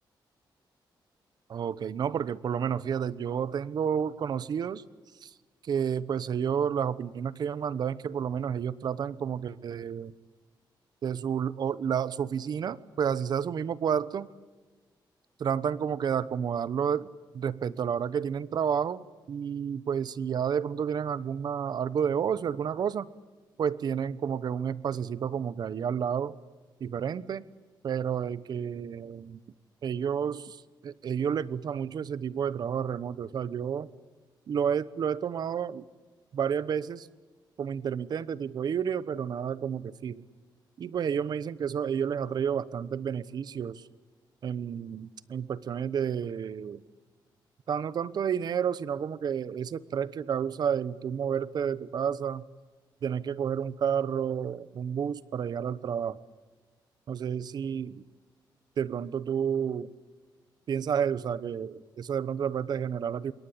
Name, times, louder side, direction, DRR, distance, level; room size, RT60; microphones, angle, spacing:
voice 1, 1.5-4.8 5.2-5.3 5.7-10.1 11.0-14.3 15.4-17.1 17.3-23.1 23.6-26.3 26.8-27.4 27.8-29.4 29.8-33.9 34.5-35.8 36.3-37.1 37.6-40.2 40.8-43.8 44.4-46.8 47.7-52.4 53.0-56.2 57.1-58.0 58.8-59.9 60.7-63.3, right 8 dB, 55° right, 17 dB, 1.0 m, -30 dB
27.0 x 23.0 x 8.8 m, 1.3 s
wide cardioid pair, 175°, 8 cm